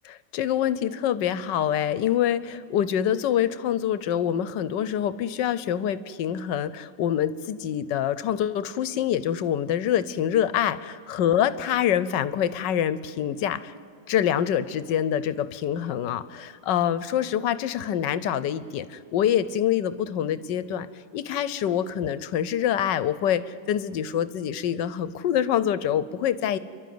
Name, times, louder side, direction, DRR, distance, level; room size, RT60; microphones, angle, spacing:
voice 1, 0.0-13.7 14.1-20.9 21.1-26.6, left 10 dB, 80° left, 15 dB, 1.4 m, -25 dB
29.0 x 12.0 x 9.4 m, 2.4 s
omnidirectional pair, 1.9 m